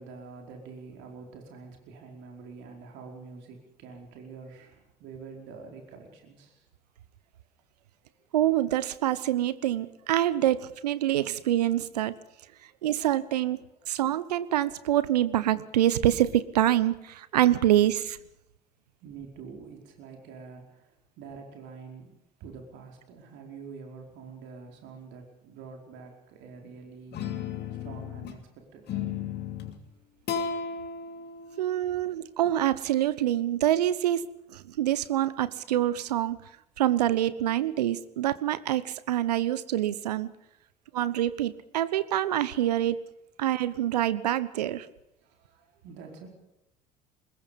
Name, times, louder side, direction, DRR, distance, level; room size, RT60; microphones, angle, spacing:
voice 1, 0.0-6.6 19.0-22.1 22.4-27.2 27.8-29.2 31.8-32.0 40.9-41.0 45.2-46.3, right 5 dB, 65° right, 2 dB, 4.9 m, -46 dB
voice 2, 8.3-12.1 12.8-13.6 13.9-18.2 31.6-36.4 36.8-40.3 40.9-43.0 43.4-44.9, right 12 dB, 80° right, 17 dB, 1.0 m, -26 dB
sound 1, 27.1-28.4 28.9-29.8 30.3-32.5, left 7 dB, 55° left, 2.8 m, -35 dB
24.5 x 21.0 x 5.4 m, 0.86 s
hypercardioid pair, 55°, 20 cm